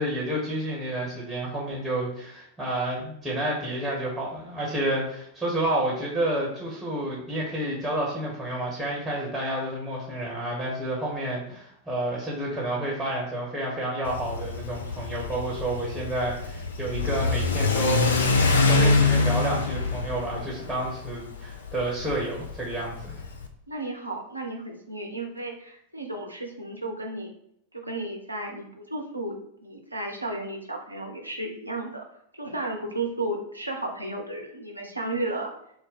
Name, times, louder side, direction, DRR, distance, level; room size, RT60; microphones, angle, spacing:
voice 1, 0.0-18.1 18.7-23.2, right 1 dB, ahead, -4 dB, 1.3 m, -30 dB
Car / Accelerating revving vroom, 14.1-23.5, left 3 dB, 65° left, 0.5 m, -25 dB
voice 2, 23.7-27.3 27.7-29.4 29.6-32.0 32.3-35.5, right 2 dB, 85° right, 1 dB, 0.7 m, -33 dB
3.9 x 2.2 x 4.1 m, 0.72 s
figure-of-eight pair, 90°, 0 cm